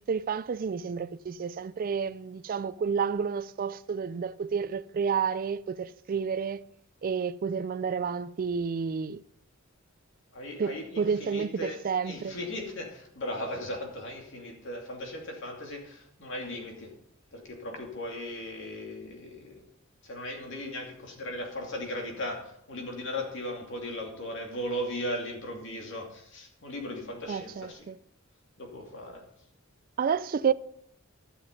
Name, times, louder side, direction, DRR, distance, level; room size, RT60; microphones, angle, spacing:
voice 1, 0.1-6.6 7.0-9.2 10.6-12.4 27.3-28.0 30.0-30.5, right 6 dB, 45° right, 0.4 m, -30 dB
voice 2, 10.3-16.9 17.3-19.7 20.0-27.9 28.6-29.2, left 1 dB, 65° left, 2.7 m, -37 dB
12.5 x 7.0 x 5.3 m
head